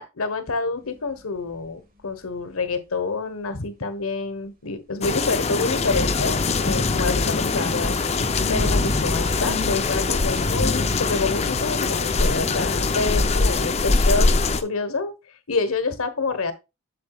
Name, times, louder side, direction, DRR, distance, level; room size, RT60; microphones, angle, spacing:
voice 1, 0.0-7.9 8.5-14.3 14.6-15.1 15.5-16.5, left 3 dB, 85° left, 1.3 m, -27 dB
sound 1, 0.8-1.7 2.0-2.1 6.0-11.0, left 3 dB, 40° right, 1.5 m, -39 dB
sound 2, 5.0-14.6, left 3 dB, 30° left, 0.6 m, -22 dB
8.1 x 6.8 x 2.3 m
head